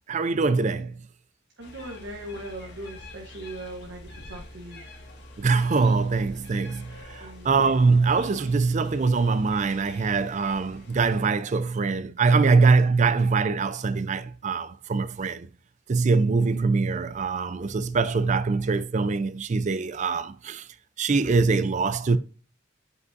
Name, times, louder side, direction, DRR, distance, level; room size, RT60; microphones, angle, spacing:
voice 1, 0.1-1.0 5.4-15.5 15.9-20.7 21.0-22.2, right 4 dB, 40° right, 0.4 m, -23 dB
sound 1, 1.6-11.2, left 1 dB, 60° left, 1.6 m, -45 dB
voice 2, 1.6-4.8 7.2-7.5, right 1 dB, 65° right, 1.1 m, -39 dB
8.0 x 5.4 x 2.6 m
head